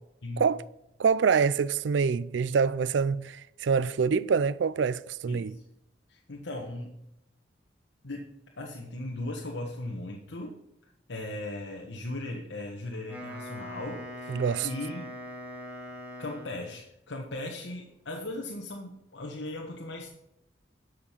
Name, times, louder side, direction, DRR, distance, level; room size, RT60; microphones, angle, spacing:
voice 1, 1.0-5.5 14.3-14.7, right 6 dB, 85° right, 0.4 m, -25 dB
voice 2, 5.3-5.6 6.1-7.0 8.0-8.3 8.6-15.1 16.2-20.1, left 2 dB, 90° left, 1.2 m, -38 dB
Wind instrument woodwind instrument, 12.9-16.8, left 1 dB, 10° right, 2.2 m, -42 dB
12.0 x 6.4 x 5.7 m
head